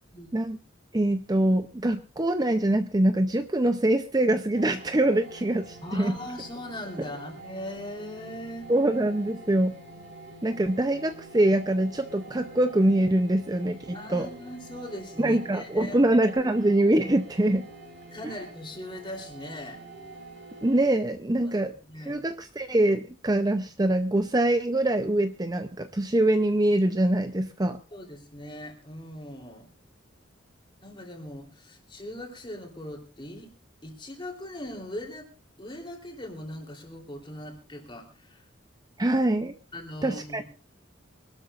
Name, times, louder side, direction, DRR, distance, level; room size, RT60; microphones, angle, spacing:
voice 1, 0.9-6.2 8.7-9.8 10.4-14.3 15.2-17.7 20.6-21.7 22.0-27.8 39.0-39.5 40.0-40.4, right 1 dB, 20° right, 9 dB, 0.6 m, -24 dB
sound 1, 4.5-20.9, right 2 dB, 70° right, 3.8 m, -46 dB
voice 2, 5.8-8.7 13.9-16.0 18.1-19.8 21.4-21.6 21.9-22.3 27.9-29.7 30.8-33.5 33.8-35.3 35.6-38.4 39.7-40.4, left 1 dB, 25° left, 2 dB, 3.4 m, -40 dB
25.0 x 12.5 x 2.5 m, 0.33 s
head